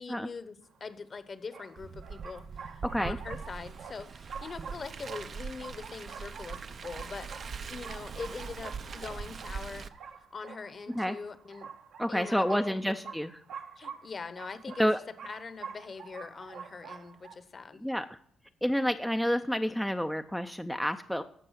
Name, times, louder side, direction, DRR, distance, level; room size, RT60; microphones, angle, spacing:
voice 1, 0.0-7.3 7.7-9.9 10.3-11.7 12.1-13.1 13.8-17.8 21.1-21.2, left 4 dB, 40° left, 12 dB, 0.9 m, -43 dB
sound 1, 0.7-0.8 1.5-17.4, right 6 dB, 75° right, 1.3 m, -47 dB
Car, 1.8-9.9, right 5 dB, 50° right, 0.6 m, -42 dB
voice 2, 2.8-3.2 10.9-11.1 12.0-13.3 14.8-15.0 17.8-18.1 18.6-21.2, equal, ahead, 6 dB, 0.5 m, -29 dB
14.5 x 5.4 x 5.7 m, 0.65 s
cardioid pair, 90°, 0 cm